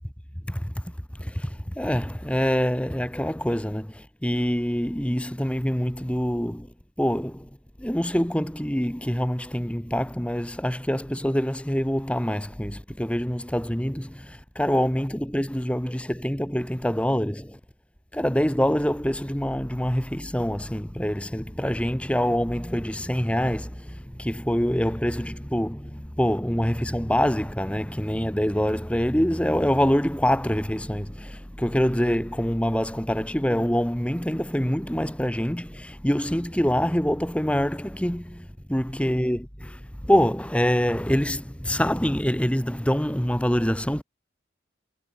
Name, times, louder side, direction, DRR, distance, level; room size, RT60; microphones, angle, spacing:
voice 1, 1.2-6.7 7.0-7.5 7.8-17.6 18.1-44.0, equal, 5° left, 1.5 m, -25 dB
head